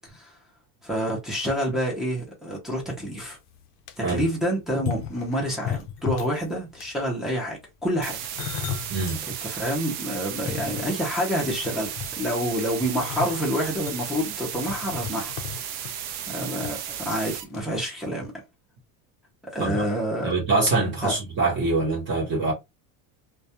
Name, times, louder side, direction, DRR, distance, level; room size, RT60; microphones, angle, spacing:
voice 1, 0.8-3.4 4.0-8.2 8.6-8.7 9.4-15.3 16.3-18.3 19.5-20.3 21.0-21.1, equal, ahead, 0.5 m, -28 dB
sound 1, 3.0-3.1 3.5-3.9 4.7-6.4 6.7-7.1 7.9-9.2 9.7-9.8 10.3-11.3 11.6-12.4 13.0-16.7 17.0-17.2 17.5-17.6, left 9 dB, 55° left, 0.5 m, -35 dB
sound 2, 8.0-17.4, right 9 dB, 65° right, 0.6 m, -34 dB
voice 2, 8.9-9.2 19.6-19.9 20.2-22.5, right 3 dB, 30° right, 0.8 m, -24 dB
2.3 x 2.2 x 2.7 m
cardioid pair, 175°, 41 cm